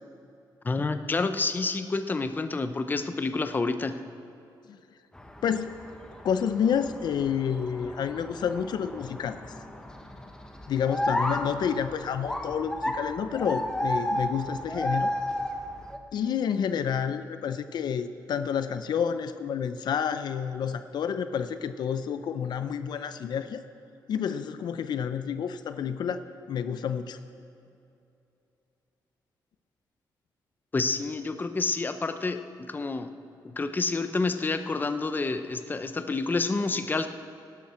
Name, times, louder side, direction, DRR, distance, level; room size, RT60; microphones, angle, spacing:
voice 1, 0.6-3.9 30.7-33.1 33.4-37.1, left 3 dB, 25° left, 9 dB, 0.7 m, -28 dB
sound 1, 5.1-16.0, left 1 dB, 10° left, 1.2 m, -33 dB
voice 2, 5.4-5.7 6.2-9.4 10.7-15.1 16.1-23.6 24.1-26.2 26.5-27.2, left 7 dB, 70° left, 10 dB, 0.6 m, -29 dB
18.0 x 11.5 x 4.4 m, 2.7 s
cardioid pair, 95°, 8 cm